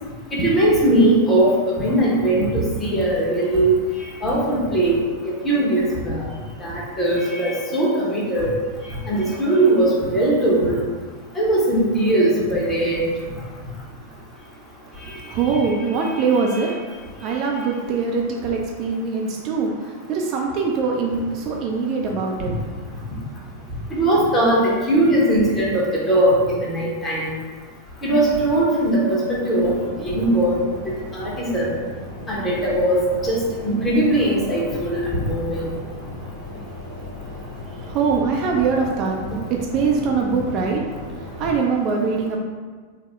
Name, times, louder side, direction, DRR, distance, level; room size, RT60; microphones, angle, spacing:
voice 1, 0.3-5.0 5.4-6.2 6.6-8.5 8.9-10.7 11.3-13.0 15.0-15.2 15.4-15.6 23.9-27.4 28.0-30.6 31.1-31.7 32.3-35.7, right 1 dB, 20° left, -5 dB, 1.1 m, -20 dB
voice 2, 14.8-23.1 37.3-42.4, right 5 dB, 40° right, 0 dB, 0.4 m, -23 dB
sound 1, 29.6-41.6, left 2 dB, 85° left, 1.0 m, -36 dB
3.7 x 2.1 x 3.5 m, 1.5 s
figure-of-eight pair, 90°, 0 cm